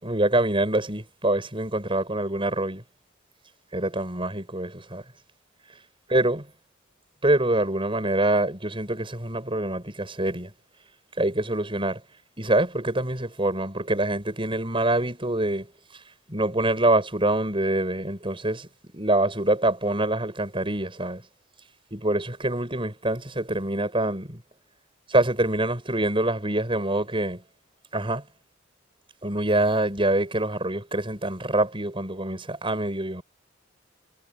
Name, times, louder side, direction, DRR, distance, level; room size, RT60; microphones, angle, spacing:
voice 1, 0.0-2.8 3.7-5.0 6.1-6.5 7.2-10.5 11.2-12.0 12.4-15.7 16.3-18.7 18.9-21.2 21.9-24.4 25.1-27.4 27.9-28.2 29.2-33.2, right 1 dB, 25° right, 7.2 m, -25 dB
head